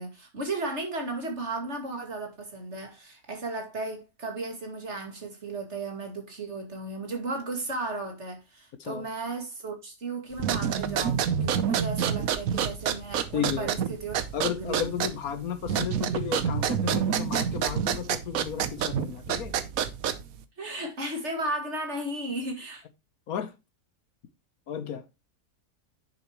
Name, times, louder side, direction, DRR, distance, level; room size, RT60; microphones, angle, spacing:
voice 1, 0.0-14.2 14.6-15.0 20.6-22.8, right 2 dB, 45° right, 2.5 m, -35 dB
sound 1, 10.3-20.4, right 8 dB, 65° right, 1.2 m, -28 dB
voice 2, 13.3-13.7 14.3-19.5 23.3-23.5 24.7-25.0, left 9 dB, 70° left, 1.4 m, -33 dB
9.8 x 6.9 x 3.0 m
omnidirectional pair, 1.7 m